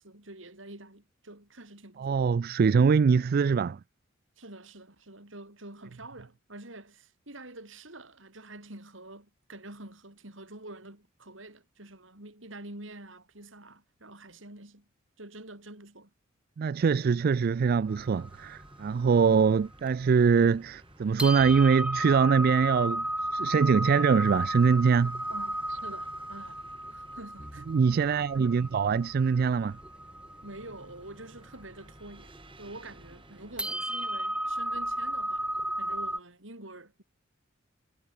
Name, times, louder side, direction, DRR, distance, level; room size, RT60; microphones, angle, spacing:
voice 1, 0.0-2.3 4.4-14.9 15.2-16.1 25.3-26.6 26.9-27.7 28.3-28.7 30.4-35.5 35.8-37.0, right 2 dB, 70° right, 6.4 m, -47 dB
voice 2, 2.0-3.8 16.6-23.0 23.3-25.2 27.7-29.8, right 5 dB, 50° right, 0.3 m, -23 dB
sound 1, 17.5-35.4, right 1 dB, 25° right, 5.1 m, -54 dB
sound 2, 17.9-20.2 20.7-20.8 21.2-36.2, right 1 dB, 5° right, 3.8 m, -34 dB
head